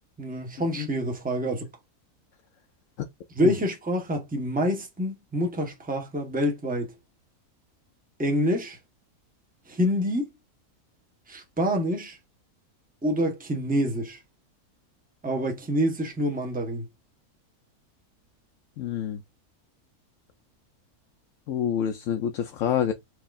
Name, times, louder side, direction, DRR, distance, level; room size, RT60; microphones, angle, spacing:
voice 1, 0.2-1.7 3.3-6.9 8.2-8.8 9.7-10.3 11.3-12.2 13.0-14.2 15.2-16.8, equal, 5° right, 0.8 m, -27 dB
voice 2, 18.8-19.2 21.5-22.9, left 9 dB, 65° left, 0.9 m, -27 dB
4.6 x 3.2 x 2.4 m
omnidirectional pair, 1.6 m